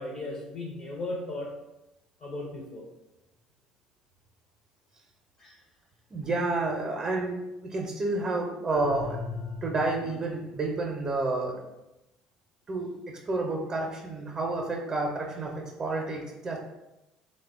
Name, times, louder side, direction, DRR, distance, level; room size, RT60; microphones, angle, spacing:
voice 1, 0.0-1.5 2.2-2.9 5.4-5.6, left 2 dB, 50° left, -1 dB, 0.6 m, -36 dB
voice 2, 6.1-9.2 9.6-11.6 12.7-16.6, right 2 dB, 35° right, 0 dB, 0.5 m, -30 dB
sound 1, 8.7-10.2, left 4 dB, 75° left, 0.9 m, -37 dB
3.3 x 2.1 x 2.4 m, 0.95 s
hypercardioid pair, 75°, 2 cm